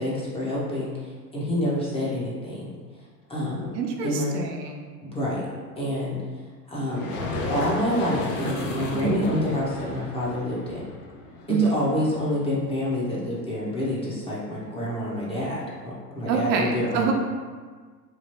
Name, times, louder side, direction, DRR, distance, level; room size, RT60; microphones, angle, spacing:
voice 1, 0.0-2.7 3.3-3.7 4.0-4.3 5.0-5.5 5.8-6.2 6.7-7.1 7.5-10.8 11.6-17.1, left 1 dB, 10° left, -7 dB, 0.5 m, -28 dB
voice 2, 3.7-4.9 8.9-9.4 11.5-11.9 16.3-17.1, right 5 dB, 75° right, 2 dB, 0.6 m, -26 dB
sound 1, 6.9-12.5, left 2 dB, 60° left, 0.7 m, -34 dB
3.0 x 2.3 x 2.9 m, 1.5 s
hypercardioid pair, 105°, 50 cm